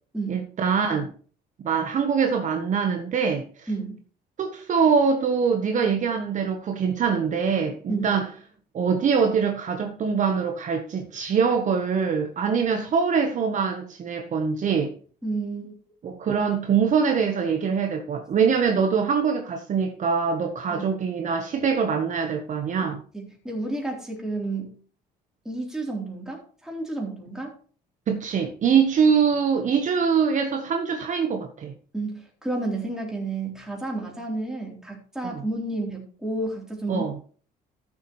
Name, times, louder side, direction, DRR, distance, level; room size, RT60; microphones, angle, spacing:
voice 1, 0.3-1.1 1.6-3.7 4.4-8.3 8.7-14.9 16.0-23.0 28.1-31.7 35.3-35.4 36.9-37.1, right 6 dB, 45° right, 1.2 m, -23 dB
voice 2, 15.2-15.7 20.7-20.9 23.1-24.7 25.5-27.5 31.9-37.1, right 2 dB, 5° right, 3.6 m, -31 dB
13.5 x 7.3 x 3.2 m
cardioid pair, 110°, 17 cm